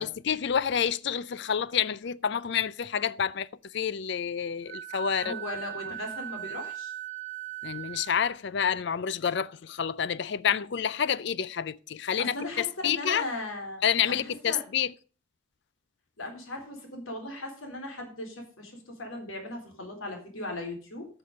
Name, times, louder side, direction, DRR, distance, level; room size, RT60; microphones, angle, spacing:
voice 1, 0.0-3.5 3.7-5.3 7.6-13.2 13.8-14.9, left 8 dB, 55° left, 0.4 m, -28 dB
Wind instrument woodwind instrument, 4.7-8.2, right 12 dB, 60° right, 1.2 m, -39 dB
voice 2, 5.2-6.9 12.2-14.6 16.2-21.1, left 1 dB, 75° left, 3.9 m, -38 dB
13.0 x 6.8 x 5.2 m
head